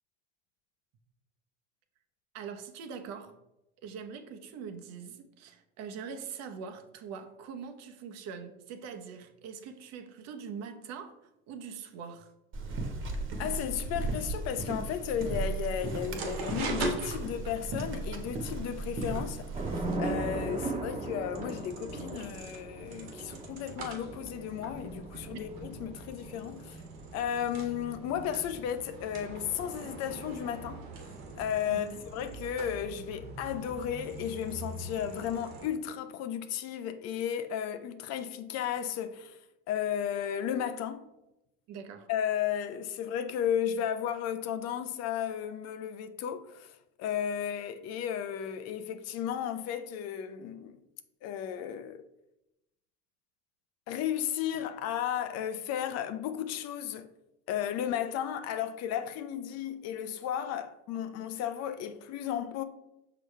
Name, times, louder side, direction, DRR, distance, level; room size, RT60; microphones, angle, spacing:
voice 1, 2.3-3.4 3.8-12.3 25.3-25.4 31.7-32.0 41.7-42.1, right 6 dB, 60° right, 1.0 m, -43 dB
sound 1, 12.5-20.0, right 3 dB, 40° right, 1.3 m, -36 dB
voice 2, 13.4-19.5 20.0-26.8 27.1-30.9 31.4-39.4 39.7-41.1 42.1-50.8 51.2-52.1 53.9-57.1 57.5-62.6, left 9 dB, 60° left, 0.6 m, -34 dB
sound 2, 15.8-35.7, right 3 dB, 85° right, 1.6 m, -43 dB
Thunder / Rain, 19.5-32.1, right 2 dB, 20° right, 1.3 m, -40 dB
5.8 x 5.0 x 3.3 m
supercardioid pair, 100°, 29 cm